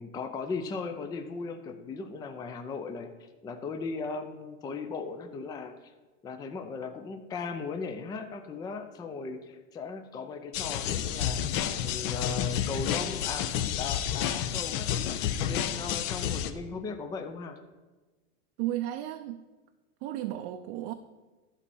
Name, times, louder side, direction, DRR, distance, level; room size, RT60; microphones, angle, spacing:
voice 1, 0.0-5.9 6.2-13.5 13.7-17.6, left 4 dB, 10° left, 7 dB, 0.4 m, -38 dB
sound 1, 10.5-16.5, left 10 dB, 50° left, 0.7 m, -30 dB
voice 2, 18.6-19.4 20.0-20.9, right 13 dB, 50° right, 6 dB, 0.6 m, -33 dB
11.5 x 4.2 x 6.9 m, 1.2 s
supercardioid pair, 140°, 35 cm